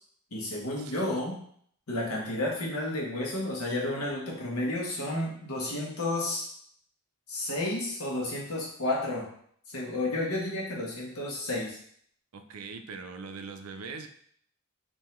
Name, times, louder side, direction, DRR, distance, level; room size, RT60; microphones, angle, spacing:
voice 1, 0.3-1.3 1.9-6.5 7.3-9.3 9.7-11.8, left 1 dB, 80° left, -2 dB, 1.3 m, -31 dB
voice 2, 12.3-14.1, right 4 dB, 80° right, 7 dB, 0.5 m, -41 dB
3.6 x 2.7 x 4.3 m, 0.63 s
head